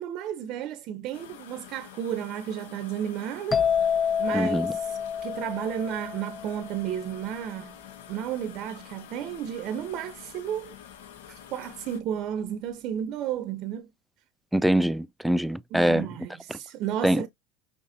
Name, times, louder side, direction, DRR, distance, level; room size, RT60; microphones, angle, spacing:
voice 1, 0.0-3.7 4.2-7.8 8.1-10.8 11.5-13.9 15.7-17.3, right 10 dB, 55° right, 0.6 m, -33 dB
sound 1, 1.1-12.0, left 9 dB, 80° left, 1.0 m, -48 dB
sound 2, 3.5-7.1, left 7 dB, 25° left, 0.7 m, -28 dB
voice 2, 4.3-4.7 14.5-16.1 16.5-16.6 17.0-17.3, right 1 dB, 5° right, 0.3 m, -24 dB
5.8 x 3.0 x 2.7 m
hypercardioid pair, 100°, 0 cm